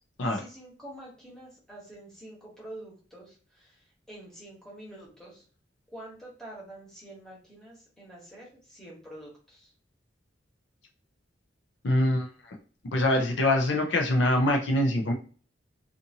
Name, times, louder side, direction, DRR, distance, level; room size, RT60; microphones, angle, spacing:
voice 1, 0.3-5.4 5.9-9.7, right 1 dB, 5° left, -5 dB, 1.1 m, -47 dB
voice 2, 11.8-12.6 12.9-15.1, left 1 dB, 70° left, 3 dB, 0.5 m, -24 dB
2.6 x 2.5 x 2.7 m, 0.40 s
head